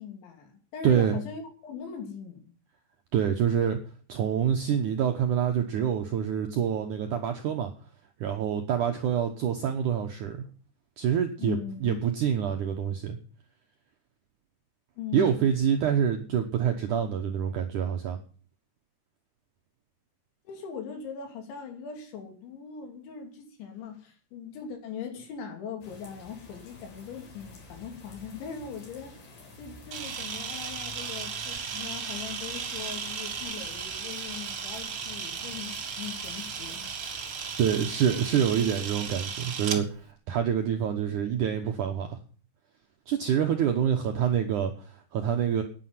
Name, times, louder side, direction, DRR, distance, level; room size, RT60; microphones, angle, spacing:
voice 1, 0.0-2.5 11.4-12.0 15.0-15.4 20.4-29.3 29.6-36.9, left 7 dB, 80° left, 4 dB, 5.1 m, -40 dB
voice 2, 0.8-1.2 3.1-3.8 4.1-7.7 8.2-10.5 11.0-13.2 15.1-18.2 37.6-42.2 43.1-45.6, right 8 dB, 80° right, 5 dB, 1.8 m, -26 dB
sound 1, 25.8-38.8, left 3 dB, 50° left, 5.3 m, -49 dB
Camera, 29.9-39.8, right 6 dB, 60° right, 1.4 m, -36 dB
10.0 x 9.9 x 9.5 m, 0.42 s
omnidirectional pair, 5.3 m